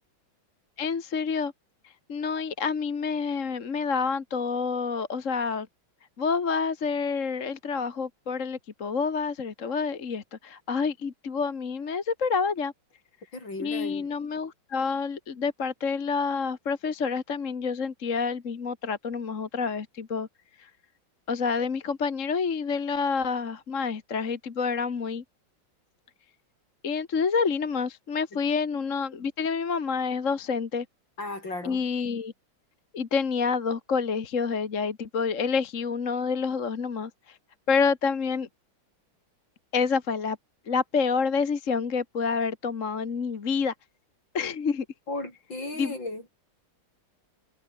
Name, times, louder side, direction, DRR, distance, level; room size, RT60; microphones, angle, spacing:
voice 1, 0.8-1.5 2.1-5.7 6.2-12.7 13.6-20.3 20.6-20.7 21.3-25.2 26.8-30.9 31.6-32.3 32.9-37.4 37.7-38.5 39.7-40.4 40.7-43.7 44.3-44.9 45.8-45.9, left 5 dB, 40° left, 1.8 m, -28 dB
voice 2, 13.3-14.1 28.3-28.4 31.2-31.8 45.1-46.2, left 2 dB, 60° left, 8.6 m, -35 dB
omnidirectional pair, 2.3 m